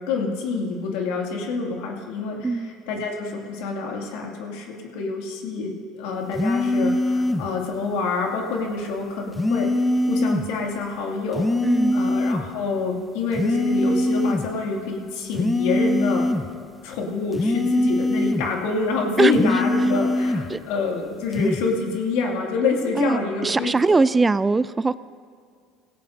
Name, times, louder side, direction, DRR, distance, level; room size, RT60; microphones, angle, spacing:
voice 1, 0.1-9.7 10.1-11.5 11.9-16.3 16.8-24.0, left 4 dB, 75° left, 1 dB, 2.3 m, -27 dB
sound 1, 6.3-7.5 9.4-10.5 11.4-12.5 13.3-14.5 15.3-16.5 17.3-18.5 19.3-20.5 21.3-21.7, left 1 dB, 15° left, 0.8 m, -22 dB
voice 2, 11.6-12.0 19.2-19.3 20.5-20.6 23.0-24.9, right 3 dB, 20° right, 16 dB, 0.3 m, -21 dB
17.5 x 17.0 x 2.7 m, 2.1 s
hypercardioid pair, 75°, 0 cm